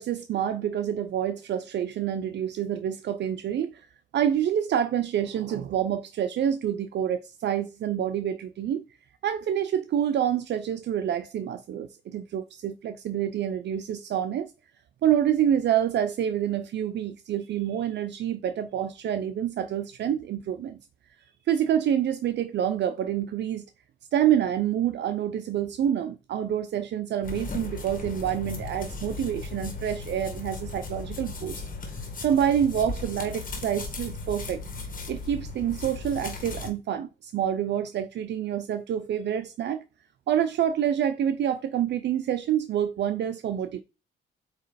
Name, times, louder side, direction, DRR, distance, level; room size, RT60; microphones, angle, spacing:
voice 1, 0.0-3.9 4.1-8.8 9.2-14.5 15.0-20.8 21.5-23.7 24.1-31.6 32.2-34.6 35.1-39.8 40.3-43.8, right 10 dB, 60° right, 0.6 m, -27 dB
sound 1, 27.2-36.7, left 3 dB, 45° left, 2.0 m, -36 dB
8.2 x 3.1 x 4.1 m
cardioid pair, 90°, 20 cm